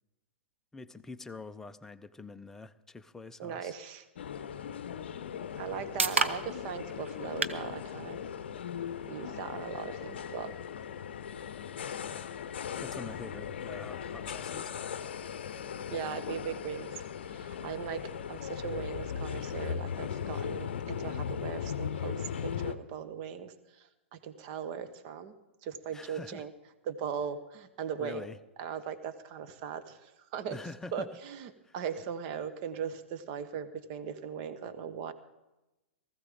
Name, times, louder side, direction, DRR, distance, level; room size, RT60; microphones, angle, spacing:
voice 1, 0.7-3.7 6.3-6.5 12.8-14.7 25.9-26.5 28.0-28.4 30.5-31.1 31.6-31.7, left 3 dB, 5° left, 0.5 m, -45 dB
voice 2, 3.4-4.0 5.6-8.2 9.1-10.6 15.9-18.0 18.3-25.3 25.6-26.5 26.8-28.3 28.6-30.6 30.9-35.1, right 7 dB, 40° right, 1.2 m, -39 dB
sound 1, 4.2-22.8, left 8 dB, 60° left, 0.7 m, -38 dB
sound 2, 5.2-19.1, right 4 dB, 75° right, 0.9 m, -41 dB
19.0 x 14.5 x 3.7 m
figure-of-eight pair, 110°, 7 cm